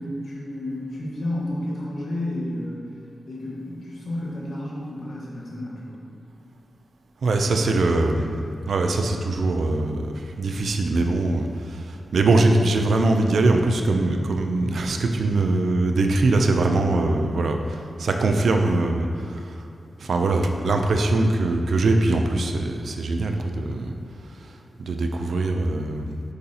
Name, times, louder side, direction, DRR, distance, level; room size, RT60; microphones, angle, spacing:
voice 1, 0.0-2.9 3.3-6.0, left 1 dB, 75° left, -5 dB, 1.5 m, -31 dB
voice 2, 7.2-8.3 8.7-19.5 20.0-23.9 24.8-26.2, right 2 dB, 80° right, 4 dB, 0.5 m, -22 dB
6.5 x 5.6 x 2.9 m, 2.6 s
cardioid pair, 65°, 0 cm